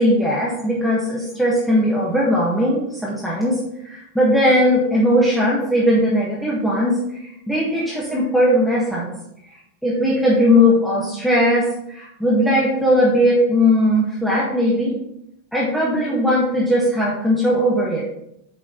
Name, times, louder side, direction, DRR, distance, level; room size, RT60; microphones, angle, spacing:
voice 1, 0.0-9.1 9.8-14.9 15.5-18.0, equal, ahead, -6 dB, 1.4 m, -18 dB
8.8 x 3.9 x 3.9 m, 0.79 s
figure-of-eight pair, 90°, 0 cm